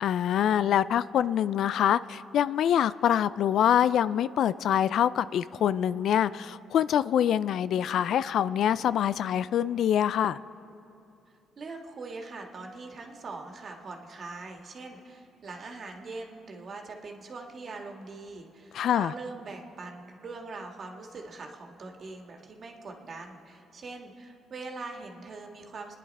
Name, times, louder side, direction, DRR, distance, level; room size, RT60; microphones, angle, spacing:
voice 1, 0.0-10.4 18.7-19.1, left 10 dB, 70° left, 16 dB, 0.3 m, -25 dB
voice 2, 11.6-26.0, right 3 dB, 50° right, 2 dB, 1.8 m, -42 dB
28.0 x 10.0 x 4.2 m, 2.7 s
cardioid pair, 90°, 0 cm